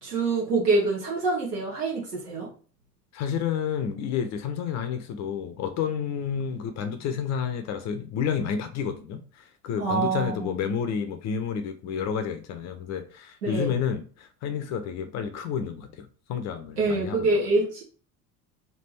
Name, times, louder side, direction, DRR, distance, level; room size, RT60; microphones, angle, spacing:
voice 1, 0.0-2.5 9.8-10.7 13.4-13.7 16.8-17.8, right 3 dB, 80° right, 1.0 m, -26 dB
voice 2, 3.1-17.3, left 7 dB, 35° left, 0.6 m, -30 dB
3.3 x 2.5 x 3.1 m
figure-of-eight pair, 70°, 46 cm